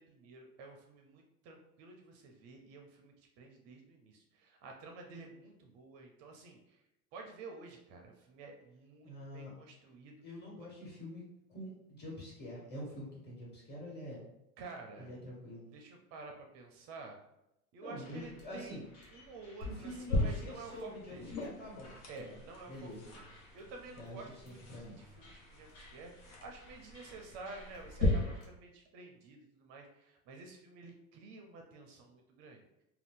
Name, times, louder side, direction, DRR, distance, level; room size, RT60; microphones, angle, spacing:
voice 1, 0.0-6.8 7.1-10.2 10.6-10.7 14.6-15.1 15.7-17.2 17.7-18.8 19.1-21.4 22.1-23.2 23.5-32.7, right 3 dB, 35° right, 2 dB, 0.4 m, -51 dB
voice 2, 9.0-9.5 10.2-11.2 11.5-14.2 15.0-15.6 17.8-18.8 19.6-22.4 22.7-23.0 24.0-24.2 24.4-25.0, left 1 dB, 25° left, -5 dB, 1.4 m, -46 dB
sound 1, 18.0-28.5, left 1 dB, 40° left, 1.2 m, -59 dB
sound 2, 19.6-28.1, left 2 dB, 80° left, 0.9 m, -40 dB
2.5 x 2.3 x 3.6 m, 0.87 s
hypercardioid pair, 115°, 44 cm